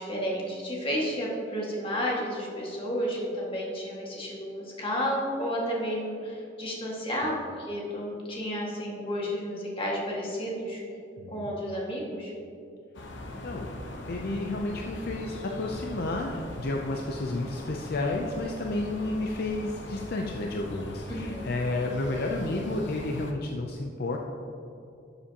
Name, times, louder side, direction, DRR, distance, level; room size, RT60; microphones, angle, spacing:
voice 1, 0.0-10.8 11.3-12.3 21.1-21.5, equal, 30° left, -4 dB, 1.9 m, -32 dB
voice 2, 11.2-11.5 13.4-13.7 14.1-24.2, left 2 dB, 55° left, 1 dB, 0.6 m, -31 dB
sound 1, 12.9-23.3, left 1 dB, 70° left, 0.9 m, -41 dB
12.5 x 7.1 x 2.9 m, 2.7 s
head